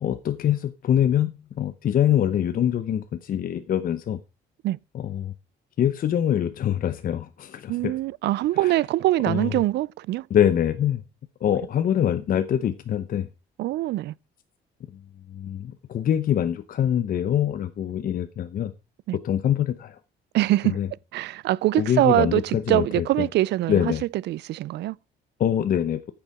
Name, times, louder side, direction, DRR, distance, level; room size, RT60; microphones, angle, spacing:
voice 1, 0.0-4.2 4.9-5.3 5.8-7.9 8.6-8.7 9.3-9.5 10.3-11.0 11.4-13.3 14.9-15.0 15.3-18.7 19.2-20.0 20.6-20.9 21.8-23.3 23.7-24.0 25.4-26.0, left 10 dB, 50° left, 0.8 m, -24 dB
voice 2, 7.7-10.3 13.6-14.1 19.1-19.2 20.3-20.8 21.1-25.0, right 16 dB, 65° right, 0.4 m, -23 dB
9.1 x 6.9 x 4.7 m
cardioid pair, 125°, 19 cm